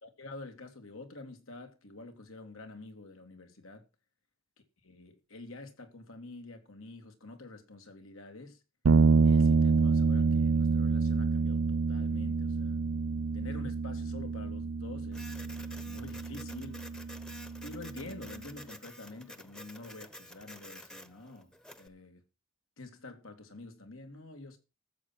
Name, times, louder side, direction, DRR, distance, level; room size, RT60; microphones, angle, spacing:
voice 1, 0.0-3.9 4.8-8.6 9.2-12.8 13.3-16.9 17.6-21.5 21.8-22.2 22.8-24.6, left 2 dB, 85° left, 2.8 m, -47 dB
sound 1, 8.8-18.3, right 4 dB, 85° right, 0.5 m, -28 dB
Printer, 15.1-21.9, left 1 dB, 5° left, 0.9 m, -50 dB
13.5 x 7.6 x 6.1 m
head